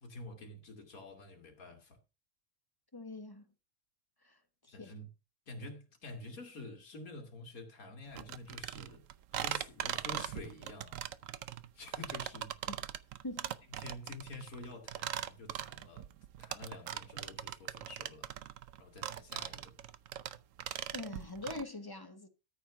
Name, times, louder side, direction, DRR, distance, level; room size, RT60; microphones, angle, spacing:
voice 1, 0.0-2.0 4.7-5.1 5.5-9.0 9.3-11.0 11.7-12.6 13.8-16.1 16.4-18.3 18.8-19.8, left 2 dB, 70° left, 2.5 m, -48 dB
voice 2, 2.9-3.5 4.2-4.9 12.7-12.8 13.2-13.5 20.9-22.3, left 2 dB, 15° left, 1.3 m, -44 dB
sound 1, 8.1-21.6, right 11 dB, 65° right, 1.0 m, -40 dB
13.5 x 4.5 x 5.8 m
omnidirectional pair, 1.5 m